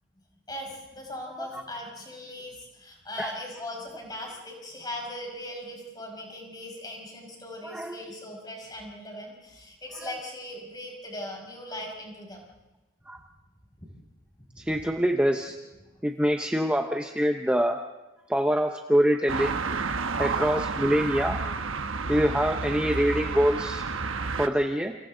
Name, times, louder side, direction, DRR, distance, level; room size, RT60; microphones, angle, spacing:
voice 1, 0.5-12.4 13.8-13.9 14.6-14.7 15.9-16.0, left 1 dB, 20° left, 0 dB, 5.5 m, -39 dB
voice 2, 7.6-8.0 10.0-10.1 13.1-13.2 14.6-15.6 16.0-17.8 18.3-19.6 20.2-21.4 22.1-23.8 24.4-25.0, equal, 5° right, 4 dB, 0.8 m, -25 dB
sound 1, 19.3-24.5, right 4 dB, 90° right, 1.1 m, -30 dB
29.0 x 26.5 x 3.9 m, 1.1 s
head